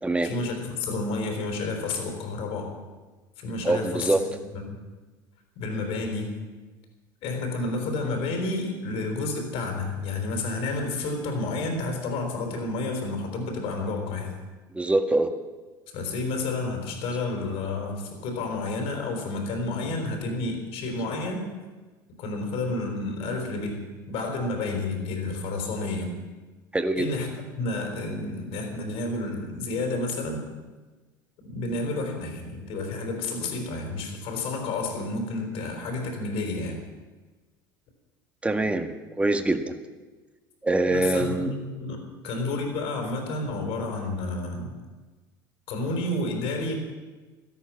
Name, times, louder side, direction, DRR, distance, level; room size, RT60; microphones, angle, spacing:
voice 1, 0.2-2.7 3.4-4.2 4.5-4.8 5.6-6.3 7.2-14.3 15.9-21.5 22.2-26.1 27.0-30.5 31.4-36.8 40.9-44.7 45.7-46.8, left 2 dB, 60° left, 3 dB, 4.1 m, -30 dB
voice 2, 3.6-4.4 14.7-15.3 26.7-27.2 38.4-39.8 40.6-41.5, right 2 dB, 10° right, 6 dB, 1.6 m, -24 dB
17.0 x 13.0 x 5.9 m, 1.3 s
hypercardioid pair, 70°, 11 cm